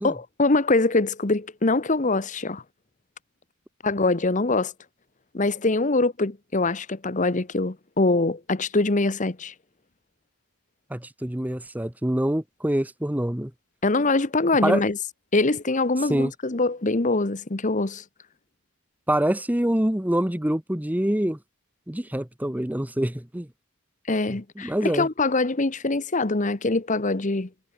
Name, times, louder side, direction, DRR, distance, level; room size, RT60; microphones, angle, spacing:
voice 1, 0.0-2.6 3.8-4.7 5.3-9.5 13.8-15.0 15.3-18.0 24.1-27.5, left 2 dB, 35° left, 1.0 m, -23 dB
voice 2, 10.9-13.5 14.6-14.8 16.1-16.3 19.1-21.4 21.9-23.5 24.6-25.1, right 1 dB, 5° right, 0.8 m, -25 dB
head